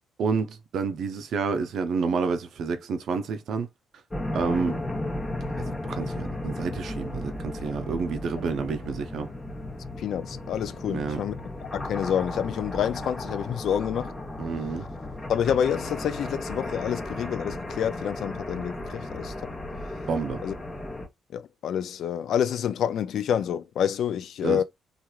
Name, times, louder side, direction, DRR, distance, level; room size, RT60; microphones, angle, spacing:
voice 1, 0.2-3.7 4.3-4.8 5.6-9.3 10.9-11.2 14.4-14.9 20.1-20.4 24.4-24.6, right 5 dB, 65° right, 0.6 m, -29 dB
sound 1, 4.1-21.1, left 1 dB, 15° left, 1.0 m, -35 dB
voice 2, 10.0-11.3 11.7-14.1 15.3-19.3 20.4-20.6 21.3-24.6, left 9 dB, 70° left, 0.4 m, -28 dB
2.9 x 2.5 x 2.4 m
cardioid pair, 95°, 0 cm